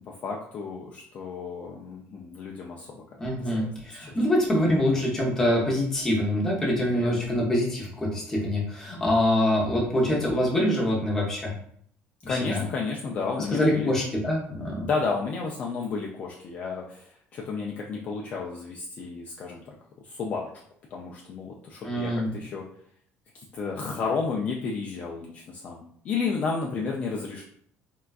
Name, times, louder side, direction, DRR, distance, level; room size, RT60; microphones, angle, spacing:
voice 1, 0.1-3.0 3.4-4.2 6.8-7.3 12.3-13.9 14.8-19.6 20.0-20.5 20.9-22.7 23.3-27.4, left 4 dB, 35° left, -1 dB, 0.3 m, -32 dB
voice 2, 3.2-11.5 12.2-12.6 13.4-14.9 21.8-22.3, left 1 dB, 10° left, -4 dB, 0.7 m, -25 dB
3.6 x 2.2 x 2.3 m, 0.64 s
cardioid pair, 170°, 4 cm